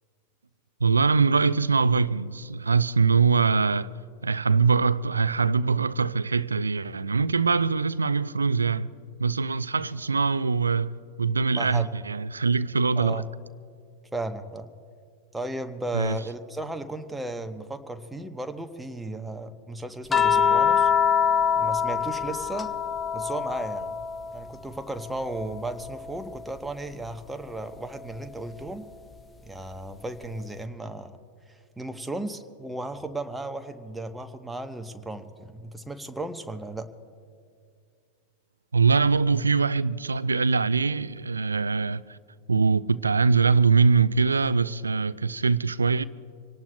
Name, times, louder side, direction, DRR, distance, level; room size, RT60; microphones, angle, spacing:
voice 1, 0.8-3.9 4.2-8.9 9.2-13.2 15.9-16.2 38.7-42.2 42.5-46.0, right 4 dB, 75° right, 0.4 m, -23 dB
voice 2, 11.5-11.9 13.0-13.3 14.1-14.7 15.3-20.9 21.6-22.7 23.1-24.0 24.3-28.9 29.4-31.2 31.5-36.9, right 2 dB, 5° right, 0.9 m, -35 dB
sound 1, 20.1-24.6 24.9-26.6 28.1-28.3, left 7 dB, 15° left, 0.6 m, -25 dB
26.0 x 18.0 x 2.2 m
figure-of-eight pair, 90°, 0 cm